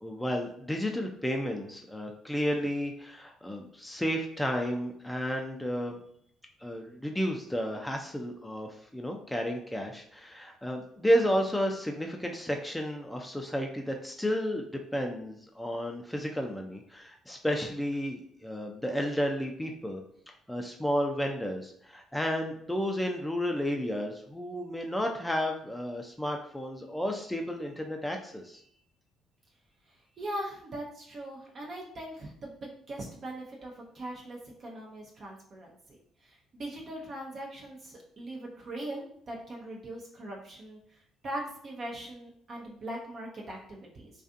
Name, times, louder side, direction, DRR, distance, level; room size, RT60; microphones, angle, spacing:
voice 1, 0.0-6.0 6.6-14.6 14.9-20.0 20.5-28.6, equal, 5° left, 2 dB, 0.4 m, -32 dB
voice 2, 30.2-35.7 36.2-40.8 41.2-44.1, right 1 dB, 50° right, -1 dB, 0.6 m, -40 dB
2.4 x 2.3 x 2.5 m, 0.65 s
hypercardioid pair, 60°, 0 cm